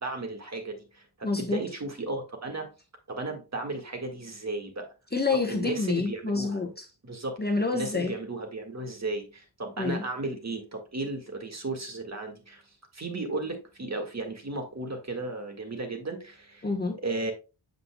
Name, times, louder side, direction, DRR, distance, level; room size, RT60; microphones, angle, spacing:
voice 1, 0.0-2.7 3.1-4.9 5.5-6.6 7.0-7.4 7.7-12.6 12.9-16.7 17.0-17.3, right 2 dB, 35° right, 1.8 m, -35 dB
voice 2, 1.2-1.6 5.1-6.9 7.4-8.1 9.8-10.0 16.6-17.0, left 3 dB, 20° left, 1.0 m, -28 dB
7.6 x 5.4 x 2.3 m
cardioid pair, 75°, 44 cm